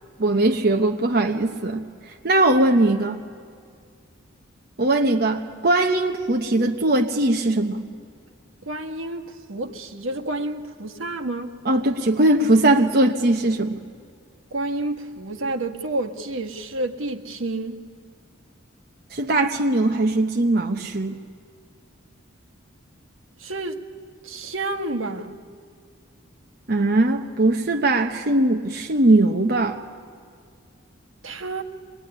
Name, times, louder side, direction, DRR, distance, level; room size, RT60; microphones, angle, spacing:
voice 1, 0.2-3.2 4.8-7.9 11.6-13.8 19.1-21.2 26.7-29.8, right 2 dB, 50° right, 1.0 m, -20 dB
voice 2, 8.6-11.5 14.5-17.8 23.4-23.8 24.2-25.4 31.2-31.6, right 2 dB, 85° right, 1.6 m, -29 dB
24.5 x 21.0 x 10.0 m
head